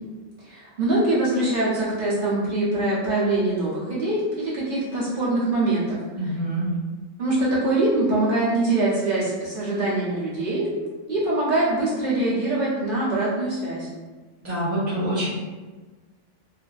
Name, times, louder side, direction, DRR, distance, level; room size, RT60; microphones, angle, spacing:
voice 1, 0.4-6.3 7.2-10.7 11.1-13.9, right 2 dB, 50° right, -9 dB, 0.9 m, -23 dB
voice 2, 6.2-6.7 14.4-15.3, right 1 dB, 15° left, -11 dB, 0.6 m, -26 dB
2.7 x 2.5 x 2.3 m, 1.3 s
omnidirectional pair, 1.3 m